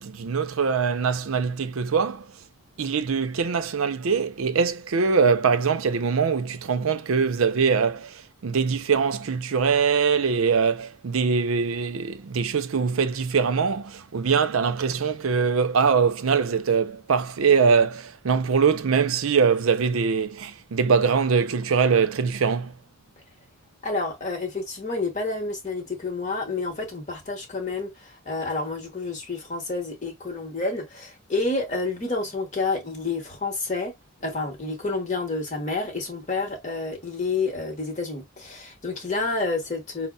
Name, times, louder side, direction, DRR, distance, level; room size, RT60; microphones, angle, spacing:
voice 1, 0.0-2.3 2.8-22.7, right 5 dB, 80° right, 0.5 m, -23 dB
voice 2, 23.8-33.9 34.2-40.1, left 3 dB, 35° left, 1.0 m, -29 dB
5.3 x 2.0 x 2.3 m
head